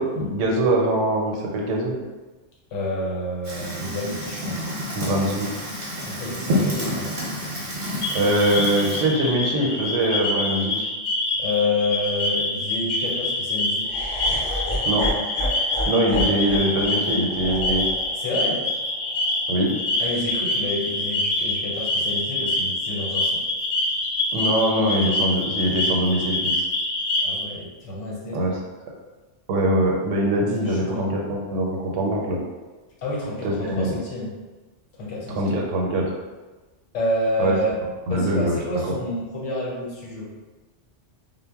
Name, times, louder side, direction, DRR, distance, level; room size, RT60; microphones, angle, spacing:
voice 1, 0.0-1.9 4.9-5.5 8.1-10.9 14.8-15.1 15.9-17.9 19.5-19.7 24.3-26.6 28.3-28.6 29.5-32.4 33.4-34.0 35.3-36.1 37.4-37.5 38.1-38.6, right 1 dB, 90° right, -1 dB, 0.9 m, -23 dB
voice 2, 2.7-4.7 5.9-7.3 8.1-8.2 11.4-13.9 18.1-18.6 20.0-23.4 27.2-28.4 30.6-31.1 33.0-34.3 35.0-35.6 36.9-37.7 38.1-40.3, left 1 dB, 90° left, -4 dB, 1.1 m, -29 dB
Fire, 3.4-9.0, equal, 50° right, 0.7 m, -29 dB
sound 1, 8.0-27.4, left 1 dB, 70° left, 0.8 m, -26 dB
Laughter, 13.8-20.0, equal, 45° left, 0.4 m, -31 dB
2.1 x 2.0 x 3.4 m, 1.2 s
omnidirectional pair, 1.2 m